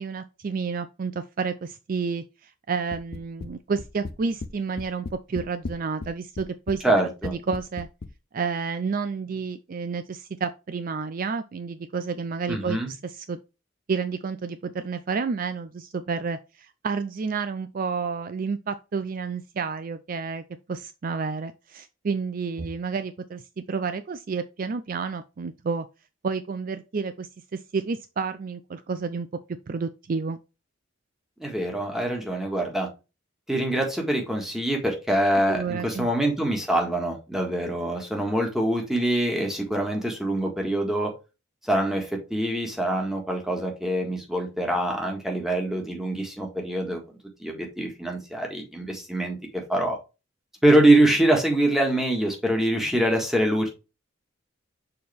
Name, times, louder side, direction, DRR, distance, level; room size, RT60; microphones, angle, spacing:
voice 1, 0.0-7.9 8.3-13.4 13.9-23.4 23.7-25.9 26.2-29.3 29.7-30.4 35.5-36.1, right 5 dB, 45° right, 0.4 m, -30 dB
sound 1, 2.9-3.5 3.8-4.5 4.8-6.1 6.4-6.8 7.2-8.1, left 3 dB, 50° left, 0.5 m, -36 dB
voice 2, 6.8-7.3 12.5-12.9 31.4-32.9 33.5-41.1 41.6-47.0 47.4-50.0 50.6-53.7, right 1 dB, ahead, 1.6 m, -24 dB
6.5 x 4.2 x 3.3 m
head